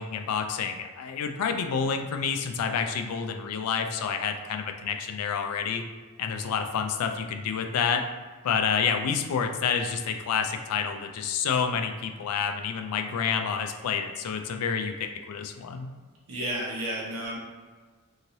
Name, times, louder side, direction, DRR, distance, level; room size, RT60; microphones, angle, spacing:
voice 1, 0.0-5.8 6.2-8.0 8.4-15.9, left 6 dB, 85° left, 5 dB, 0.3 m, -29 dB
voice 2, 16.3-17.4, right 1 dB, 70° right, -5 dB, 0.9 m, -32 dB
3.0 x 2.7 x 2.7 m, 1.4 s
head